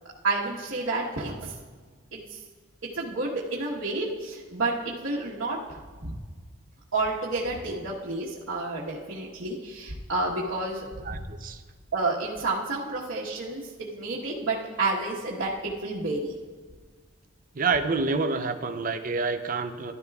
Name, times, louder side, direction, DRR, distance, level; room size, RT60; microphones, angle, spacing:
voice 1, 0.2-1.5 2.1-2.4 2.9-6.1 6.9-11.2 11.9-16.3, right 2 dB, 75° right, -7 dB, 1.3 m, -30 dB
voice 2, 11.0-11.6 17.6-19.9, right 4 dB, 40° right, 8 dB, 0.5 m, -28 dB
14.0 x 12.0 x 2.4 m, 1.5 s
head